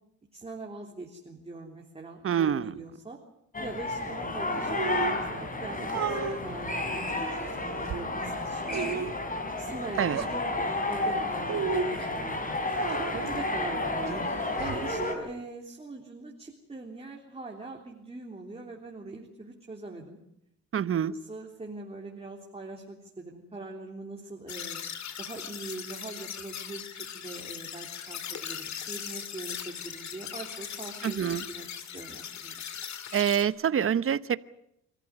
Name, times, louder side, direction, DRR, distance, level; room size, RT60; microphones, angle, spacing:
voice 1, 0.3-3.2 3.6-9.1 9.6-12.5 13.1-14.3 14.6-20.2 21.1-24.8 25.2-31.7 31.9-32.6, right 2 dB, 20° right, 0 dB, 3.5 m, -42 dB
voice 2, 2.2-2.7 10.0-10.2 20.7-21.1 31.0-31.4 33.1-34.4, right 8 dB, 45° right, 16 dB, 1.0 m, -26 dB
sound 1, 3.5-15.1, left 2 dB, 25° left, 4.8 m, -32 dB
sound 2, 4.7-5.2 5.9-6.4 7.1-8.0 8.7-9.2 10.0-10.3 11.4-12.1 12.7-13.4 14.1-14.8, right 6 dB, 60° right, 2.3 m, -33 dB
sound 3, 24.5-33.4, left 8 dB, 65° left, 2.4 m, -39 dB
26.5 x 14.0 x 9.8 m, 0.82 s
cardioid pair, 90°, 30 cm